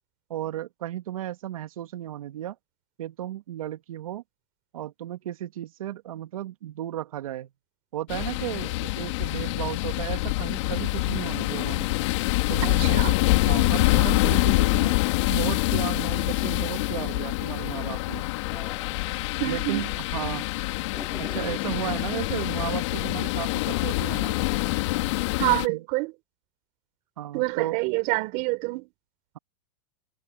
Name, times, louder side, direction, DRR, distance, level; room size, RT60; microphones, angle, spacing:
voice 1, 0.3-2.6 3.0-4.2 4.7-7.5 7.9-11.9 12.5-13.1 13.4-15.0 15.3-18.3 19.4-20.5 21.2-24.3 25.7-25.8 27.2-27.8, right 13 dB, 80° right, 2.1 m, -34 dB
sound 1, 8.1-25.7, left 22 dB, 55° left, 2.8 m, -25 dB
voice 2, 12.6-13.1 19.4-19.8 25.4-26.1 27.3-28.9, right 25 dB, 45° right, 3.7 m, -27 dB
sound 2, 18.4-20.0 20.3-21.7 22.5-23.3, left 1 dB, ahead, 4.7 m, -48 dB
hypercardioid pair, 135°, 18 cm